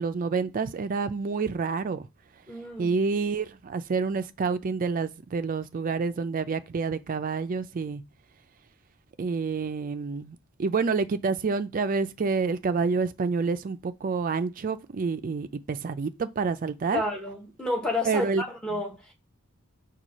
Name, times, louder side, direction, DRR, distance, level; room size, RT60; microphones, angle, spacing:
voice 1, 0.0-2.1 2.8-8.0 9.2-17.0 18.1-18.4 18.7-18.8, right 4 dB, 40° right, 0.4 m, -28 dB
voice 2, 2.5-2.9 16.9-19.1, left 2 dB, 5° left, 1.0 m, -30 dB
4.6 x 2.3 x 4.0 m
head